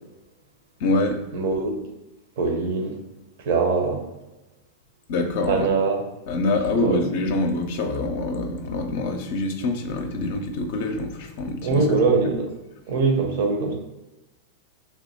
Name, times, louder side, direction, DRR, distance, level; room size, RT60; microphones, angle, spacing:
voice 1, 0.8-1.2 5.1-5.7 6.3-12.0, left 2 dB, 50° left, 4 dB, 0.4 m, -25 dB
voice 2, 1.3-1.8 2.4-2.9 3.4-4.0 5.4-6.0 6.8-7.0 11.6-12.5 12.9-13.7, right 4 dB, 55° right, 3 dB, 0.8 m, -22 dB
3.4 x 2.7 x 3.9 m, 1.0 s
figure-of-eight pair, 90°, 0 cm